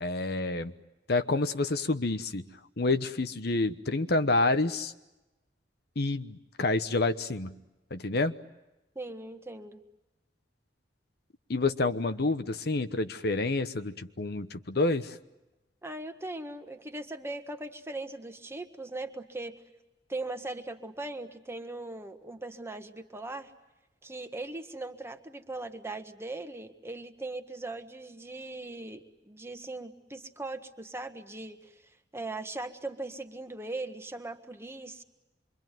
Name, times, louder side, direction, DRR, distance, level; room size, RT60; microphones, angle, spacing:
voice 1, 0.0-0.7 1.1-2.5 2.8-4.9 6.0-7.5 7.9-8.3 11.5-15.2, left 2 dB, 65° left, 10 dB, 1.1 m, -28 dB
voice 2, 8.9-9.8 15.8-19.6 20.1-23.5 24.0-35.0, right 2 dB, 15° right, 7 dB, 1.5 m, -39 dB
26.5 x 24.0 x 9.2 m, 0.99 s
head